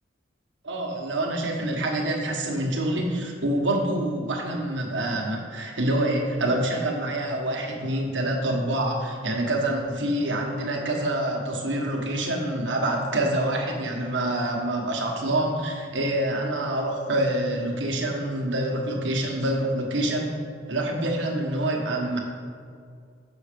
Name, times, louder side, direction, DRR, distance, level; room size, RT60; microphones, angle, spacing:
voice 1, 0.6-20.3 20.7-22.2, right 1 dB, 65° right, 0 dB, 1.3 m, -26 dB
7.1 x 6.3 x 5.1 m, 2.3 s
head